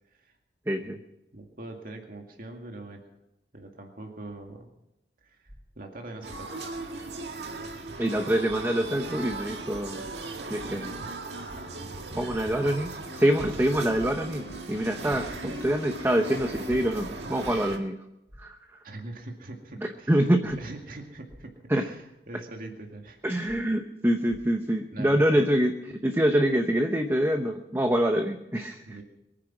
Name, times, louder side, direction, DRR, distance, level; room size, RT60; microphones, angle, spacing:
voice 1, 0.7-1.0 8.0-10.0 10.5-10.9 12.2-18.0 18.4-18.6 20.1-20.6 21.7-21.9 23.2-29.0, right 1 dB, 15° right, 5 dB, 0.9 m, -25 dB
voice 2, 1.3-3.1 3.5-4.7 5.2-5.5 5.8-6.6 18.8-20.1 20.6-23.5 24.9-25.2 28.9-29.0, right 2 dB, 55° right, 2 dB, 2.1 m, -42 dB
sound 1, 5.5-5.6 6.3-6.4 8.5-8.6 9.3-9.4 11.5-11.6 12.3-12.4 14.5-14.6 15.3-15.4 17.5-17.6 18.3-18.4 20.5-20.6 21.3-21.4 23.5-23.6 24.3-24.4, equal, 40° right, 5.5 m, -49 dB
sound 2, 6.2-17.8, right 2 dB, 75° right, 1.9 m, -38 dB
sound 3, 7.8-16.9, right 2 dB, 20° left, 2.3 m, -50 dB
23.0 x 10.0 x 6.1 m, 0.87 s
head